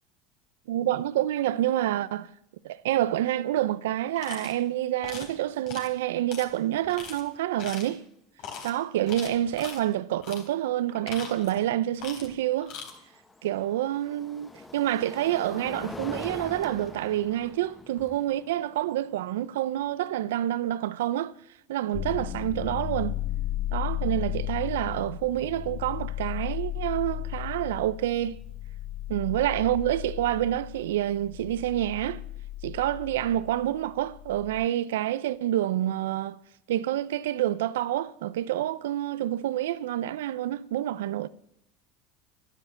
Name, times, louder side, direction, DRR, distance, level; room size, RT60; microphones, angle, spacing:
voice 1, 0.7-2.3 2.6-8.0 8.6-12.7 13.4-21.3 21.7-23.2 23.7-28.4 29.1-32.2 32.6-36.4 36.7-41.3, right 13 dB, 90° right, 0.7 m, -28 dB
sound 1, 4.2-4.5 5.0-5.3 5.7-5.9 6.3-6.4 6.9-7.2 7.6-8.0 8.4-8.7 9.1-9.8 10.2-10.5 10.9-11.6 12.0-12.3 12.6-12.9, left 6 dB, 60° left, 3.8 m, -40 dB
sound 2, 6.4-6.5 6.8-7.3 9.1-9.2 12.2-20.3, left 2 dB, 15° left, 1.5 m, -44 dB
sound 3, 21.9-34.7, left 14 dB, 40° left, 0.5 m, -35 dB
12.0 x 11.0 x 7.4 m
supercardioid pair, 110°, 0 cm